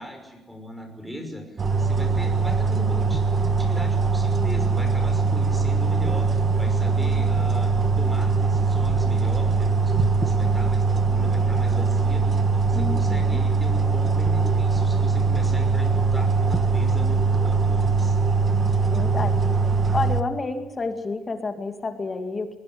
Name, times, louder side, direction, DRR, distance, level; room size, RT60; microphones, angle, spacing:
voice 1, 0.0-18.2, equal, 5° right, 5 dB, 5.6 m, -38 dB
sound 1, 1.6-20.2, right 4 dB, 30° right, 1.5 m, -21 dB
voice 2, 12.7-13.4 18.9-19.4 19.9-22.6, left 3 dB, 25° left, 7 dB, 2.3 m, -29 dB
20.5 x 20.5 x 7.9 m, 1.1 s
cardioid pair, 155°, 0 cm